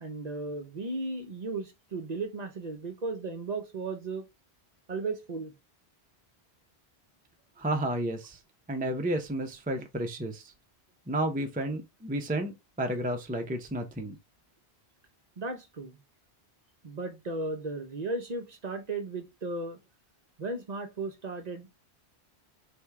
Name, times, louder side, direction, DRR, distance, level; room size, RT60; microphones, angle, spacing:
voice 1, 0.0-4.2 4.9-5.5 15.4-16.0 16.8-19.8 20.4-21.7, right 3 dB, 45° right, 0.7 m, -35 dB
voice 2, 7.6-8.4 8.7-10.4 11.1-14.2, right 1 dB, 10° right, 0.4 m, -31 dB
3.4 x 2.7 x 4.6 m
omnidirectional pair, 1.1 m